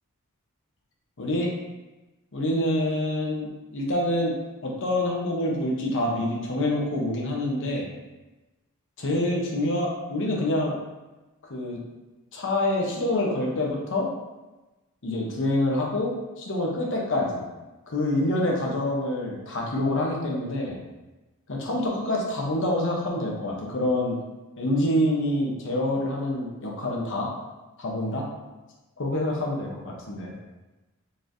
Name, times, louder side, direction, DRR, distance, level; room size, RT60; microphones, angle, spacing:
voice 1, 1.2-1.5 2.3-4.4 4.6-7.9 9.0-10.8 11.5-11.8 12.3-14.1 15.0-17.4 17.9-20.8 21.5-24.2 24.6-27.3 27.8-28.3 29.0-30.3, left 1 dB, 55° left, -1 dB, 0.8 m, -26 dB
4.0 x 3.2 x 2.6 m, 1.1 s
head